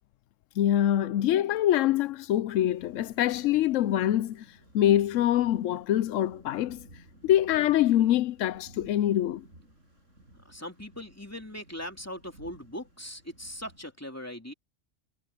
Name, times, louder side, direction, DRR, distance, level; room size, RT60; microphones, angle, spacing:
voice 1, 0.6-4.4 4.7-6.9 7.2-9.5, left 12 dB, 75° left, 0.9 m, -24 dB
sound 1, 2.5-13.9, right 1 dB, 70° right, 8.6 m, -55 dB
voice 2, 10.4-14.5, equal, 10° left, 3.0 m, -40 dB
omnidirectional pair, 1.3 m